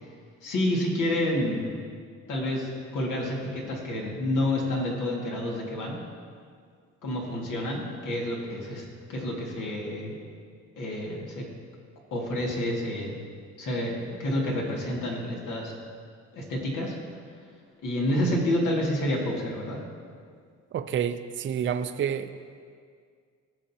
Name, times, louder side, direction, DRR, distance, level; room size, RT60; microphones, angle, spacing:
voice 1, 0.4-1.7 2.3-6.0 7.0-8.8 9.1-10.2 10.8-11.4 12.1-13.1 13.6-15.7 16.3-16.9 17.8-19.8, left 1 dB, 85° left, -2 dB, 2.0 m, -29 dB
voice 2, 20.7-22.3, right 8 dB, 40° right, 9 dB, 0.5 m, -29 dB
16.0 x 6.4 x 2.8 m, 2.1 s
cardioid pair, 90°, 30 cm